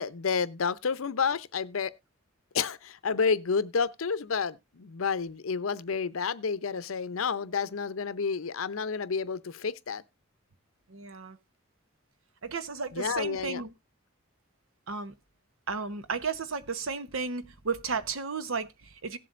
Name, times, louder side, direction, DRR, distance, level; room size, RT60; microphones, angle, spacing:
voice 1, 0.0-1.9 2.5-10.0 12.9-13.6, left 5 dB, 85° left, 0.7 m, -30 dB
voice 2, 10.9-11.4 12.4-13.7 14.9-15.1 15.7-19.2, right 4 dB, 80° right, 1.0 m, -34 dB
17.5 x 7.6 x 2.5 m
head